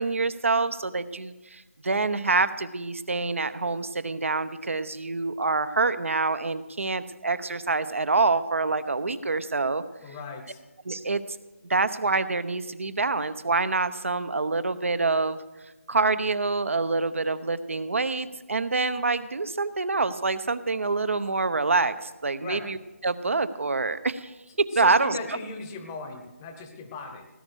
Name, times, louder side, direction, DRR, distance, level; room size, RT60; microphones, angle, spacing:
voice 1, 0.0-9.8 10.8-11.2 11.7-15.4 15.9-22.8 23.0-24.3 24.7-25.2, right 3 dB, 65° right, 13 dB, 1.0 m, -26 dB
voice 2, 10.0-10.6 22.4-22.7 24.7-27.3, left 3 dB, 10° left, 6 dB, 0.9 m, -38 dB
18.0 x 9.8 x 6.4 m, 1.1 s
figure-of-eight pair, 170°, 8 cm